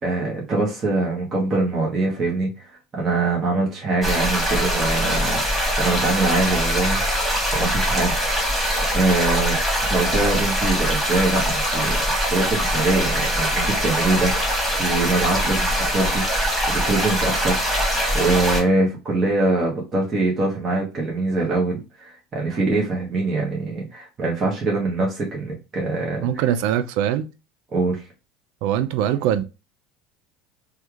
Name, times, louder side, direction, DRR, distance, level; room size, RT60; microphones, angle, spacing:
voice 1, 0.0-9.6 9.9-12.0 12.3-16.2 16.7-17.6 18.1-26.5 27.7-28.0, right 2 dB, 35° right, 1.2 m, -23 dB
sound 1, 4.0-18.6, equal, ahead, 1.7 m, -22 dB
voice 2, 26.2-27.2 28.6-29.4, right 10 dB, 70° right, 0.4 m, -22 dB
3.1 x 2.4 x 3.0 m
supercardioid pair, 105°, 0 cm